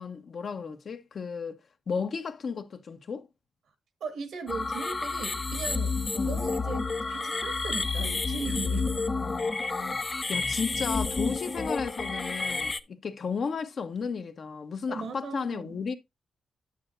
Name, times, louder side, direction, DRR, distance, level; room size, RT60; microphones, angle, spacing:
voice 1, 0.0-1.6 1.9-3.3 6.1-6.3 9.2-16.0, left 5 dB, 55° left, 1.1 m, -34 dB
voice 2, 4.0-6.0 6.2-8.9 14.9-15.8, right 4 dB, 75° right, 1.8 m, -38 dB
sound 1, 4.5-12.8, left 3 dB, 25° left, 0.6 m, -30 dB
8.9 x 8.5 x 2.5 m
cardioid pair, 105°, 0 cm